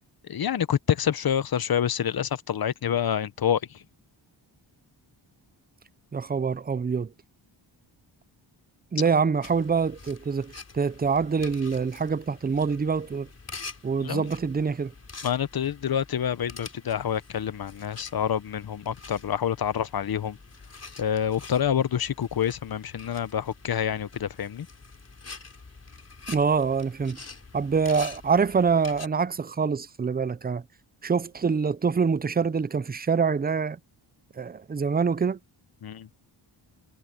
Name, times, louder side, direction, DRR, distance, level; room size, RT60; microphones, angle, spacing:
voice 1, 0.3-3.6 14.0-14.3 15.2-20.4 21.0-24.7 35.8-36.1, left 9 dB, 50° left, 0.9 m, -27 dB
voice 2, 6.1-7.1 8.9-13.3 13.8-14.9 26.3-27.2 27.5-30.6 31.0-33.8 34.4-35.4, right 5 dB, 20° right, 0.5 m, -25 dB
sound 1, 9.4-29.1, left 4 dB, 30° left, 3.8 m, -46 dB
wide cardioid pair, 110°, 46 cm